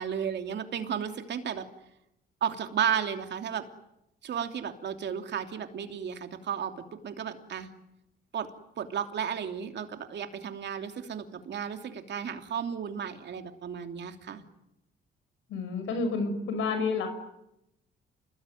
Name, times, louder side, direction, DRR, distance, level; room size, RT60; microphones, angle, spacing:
voice 1, 0.0-1.7 2.4-3.6 4.2-7.7 8.3-8.5 8.8-14.4, right 8 dB, 60° right, 6 dB, 3.0 m, -33 dB
voice 2, 15.5-17.1, left 4 dB, 85° left, 8 dB, 5.8 m, -29 dB
28.5 x 21.5 x 9.4 m, 0.85 s
cardioid pair, 90°, 20 cm